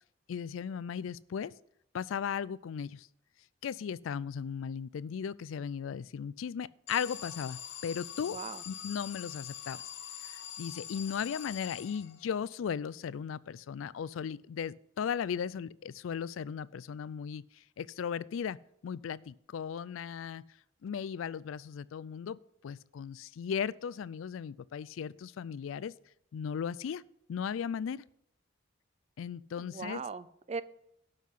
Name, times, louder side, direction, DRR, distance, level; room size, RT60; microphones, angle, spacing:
voice 1, 0.3-1.5 1.9-3.1 3.6-8.4 8.7-9.8 10.2-17.4 17.8-18.6 18.8-20.4 20.8-22.4 22.6-25.9 26.3-27.0 27.3-28.0 29.2-30.0, left 7 dB, 85° left, 21 dB, 0.4 m, -36 dB
Alarm, 6.9-12.4, left 9 dB, 60° left, 0.8 m, -44 dB
voice 2, 8.3-8.6 29.6-30.6, right 4 dB, 35° right, 16 dB, 0.4 m, -39 dB
12.0 x 5.7 x 5.6 m, 0.74 s
head